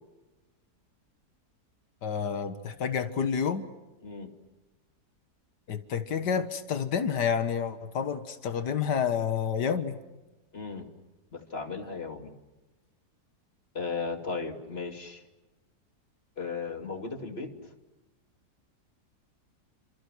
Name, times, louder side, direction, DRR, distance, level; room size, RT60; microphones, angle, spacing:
voice 1, 2.0-3.6 5.7-10.0, left 7 dB, 85° left, 10 dB, 2.0 m, -29 dB
voice 2, 10.5-10.9 11.3-12.3 13.7-15.2 16.4-17.5, left 4 dB, 35° left, 5 dB, 2.8 m, -36 dB
29.0 x 27.5 x 6.3 m, 1.1 s
omnidirectional pair, 1.7 m